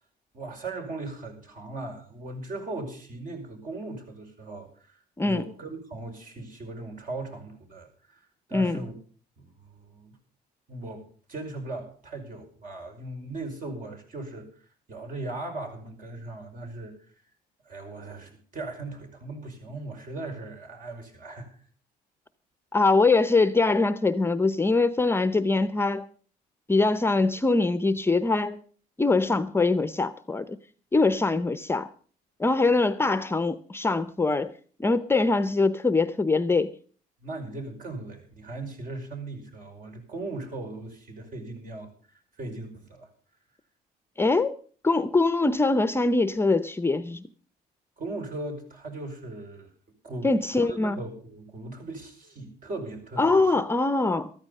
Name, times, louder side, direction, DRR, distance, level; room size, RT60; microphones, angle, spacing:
voice 1, 0.3-5.0 5.2-8.9 9.6-10.2 10.7-14.5 14.9-17.1 17.6-21.5 37.2-43.1 48.0-49.7 50.0-53.4, right 2 dB, 55° right, 5.3 m, -38 dB
voice 2, 22.7-26.1 26.7-28.6 29.0-30.6 30.9-31.9 32.4-34.5 34.8-36.7 44.2-44.6 44.8-47.2 50.2-51.0 53.2-54.3, left 3 dB, 15° left, 0.7 m, -23 dB
14.0 x 13.5 x 5.4 m
cardioid pair, 110°, 17 cm